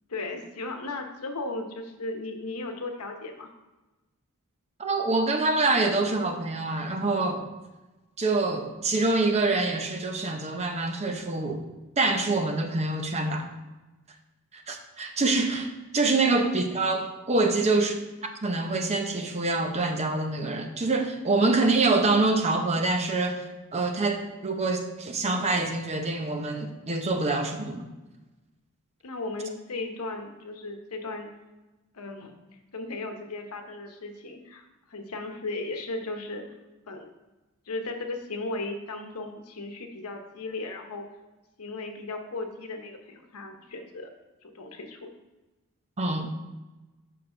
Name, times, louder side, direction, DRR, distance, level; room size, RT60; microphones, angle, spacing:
voice 1, 0.1-3.5 16.1-16.3 17.4-17.7 29.0-31.3 31.9-32.4 32.7-36.4 36.9-37.1 37.7-41.0 41.6-44.1 44.4-45.1, left 2 dB, 80° left, 5 dB, 1.0 m, -36 dB
voice 2, 4.8-7.5 8.2-11.6 12.0-13.5 14.7-17.9 18.4-23.4 23.7-27.8 46.0-46.3, right 3 dB, 30° right, 4 dB, 0.7 m, -25 dB
7.2 x 5.9 x 3.8 m, 1.1 s
head